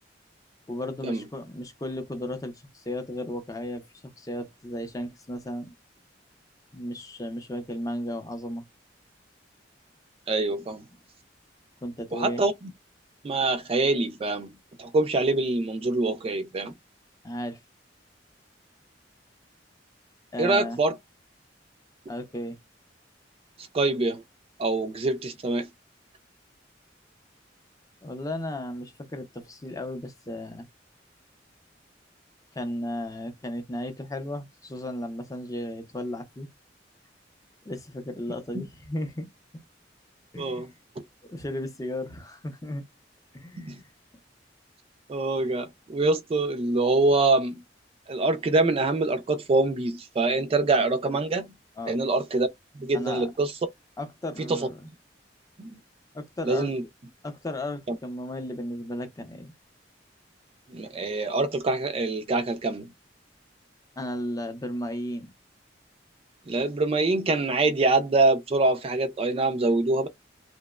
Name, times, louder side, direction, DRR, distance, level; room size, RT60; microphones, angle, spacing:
voice 1, 0.7-3.9 4.2-5.7 6.7-8.6 11.8-12.4 17.2-17.6 20.3-20.8 22.1-22.6 28.0-30.7 32.5-36.5 37.6-39.3 40.3-40.7 41.3-42.8 43.3-43.8 51.8-52.0 52.9-53.3 54.0-54.8 56.1-56.7 57.2-59.5 64.0-65.3, left 1 dB, 20° left, 0.5 m, -34 dB
voice 2, 10.3-10.8 12.1-12.7 13.2-16.7 20.4-21.0 23.6-24.2 24.6-25.7 38.5-38.6 40.4-40.7 43.6-43.8 45.1-47.6 48.1-51.5 51.9-52.5 52.7-53.5 54.5-54.7 55.6-55.8 56.4-56.8 57.9-58.0 60.7-62.9 66.5-70.1, right 2 dB, 30° right, 0.3 m, -25 dB
2.8 x 2.0 x 2.2 m
head